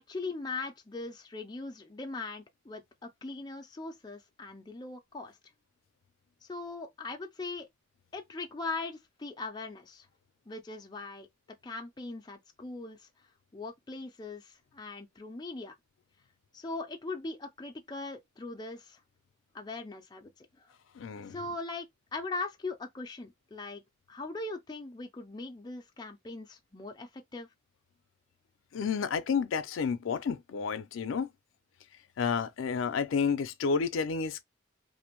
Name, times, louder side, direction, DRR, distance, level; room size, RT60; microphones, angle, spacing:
voice 1, 0.0-5.4 6.4-7.7 8.1-10.1 10.5-11.3 11.6-13.1 13.5-15.7 16.5-19.0 19.5-20.7 21.3-23.8 24.1-27.5, left 3 dB, 20° left, 0.4 m, -40 dB
voice 2, 20.9-21.4 28.7-31.3 32.2-34.4, left 5 dB, 85° left, 0.4 m, -30 dB
2.5 x 2.0 x 2.9 m
head